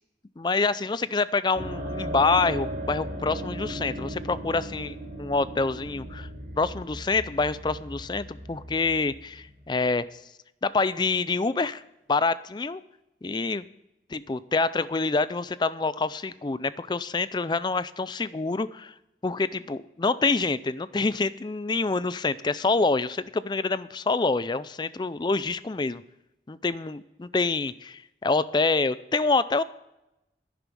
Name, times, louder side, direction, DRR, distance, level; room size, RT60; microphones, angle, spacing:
voice 1, 0.4-6.3 6.6-10.0 10.6-11.8 12.1-12.8 13.2-13.6 14.1-18.9 19.2-26.0 26.5-29.6, left 3 dB, 25° left, 16 dB, 0.4 m, -26 dB
sound 1, 1.6-9.9, right 1 dB, 40° right, 2.3 m, -36 dB
11.0 x 10.5 x 5.3 m, 0.92 s
head